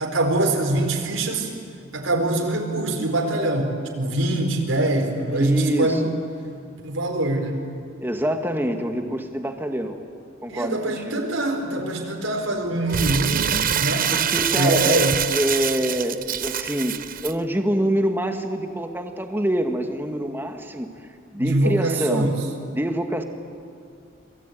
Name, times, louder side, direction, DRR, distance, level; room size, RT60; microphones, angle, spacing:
voice 1, 0.0-1.5 1.9-6.1 6.8-7.6 10.5-14.2 14.6-15.2 21.4-22.4, right 2 dB, 85° right, 2 dB, 4.5 m, -23 dB
voice 2, 5.3-6.0 8.0-10.0 10.4-11.2 14.1-15.0 15.3-16.9 17.2-20.9 21.3-22.3 22.7-23.2, equal, 10° right, 5 dB, 2.0 m, -25 dB
Crumpling crinkling, 12.9-17.3, right 9 dB, 45° right, 0.9 m, -25 dB
27.5 x 22.0 x 9.4 m, 2.3 s
head